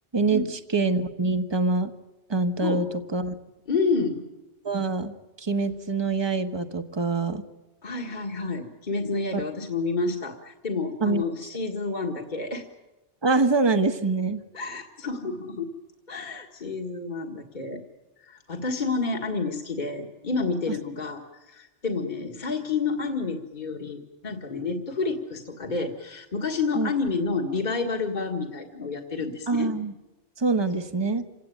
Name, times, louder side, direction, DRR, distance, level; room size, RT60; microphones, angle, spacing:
voice 1, 0.1-1.9 2.3-3.4 4.6-7.4 9.3-9.4 11.0-11.2 13.2-14.4 20.7-20.8 26.7-26.9 29.5-29.9 30.4-31.2, right 3 dB, 25° right, 8 dB, 1.3 m, -25 dB
voice 2, 3.7-4.2 7.8-12.6 14.5-15.7 16.1-17.8 18.2-29.7, left 4 dB, 40° left, 1 dB, 1.9 m, -29 dB
28.0 x 17.5 x 9.3 m, 1.1 s
omnidirectional pair, 1.2 m